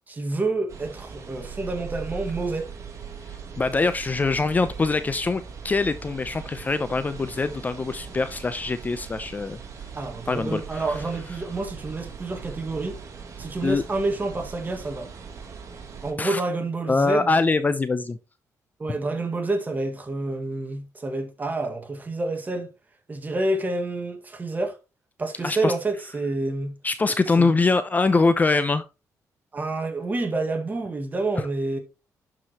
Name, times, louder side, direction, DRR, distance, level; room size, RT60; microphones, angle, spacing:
voice 1, 0.1-2.7 9.9-13.0 13.4-15.1 16.0-17.3 18.8-22.7 23.1-24.8 25.2-26.7 27.4-27.5 29.5-31.8, right 2 dB, 25° right, 1.7 m, -28 dB
sound 1, 0.7-16.1, right 6 dB, 50° right, 2.0 m, -40 dB
voice 2, 3.3-9.6 10.3-11.0 13.6-13.8 16.2-16.4 16.9-18.2 18.9-19.0 25.4-25.7 26.8-28.8, left 3 dB, 25° left, 0.6 m, -23 dB
11.5 x 4.9 x 2.9 m
cardioid pair, 100°, 6 cm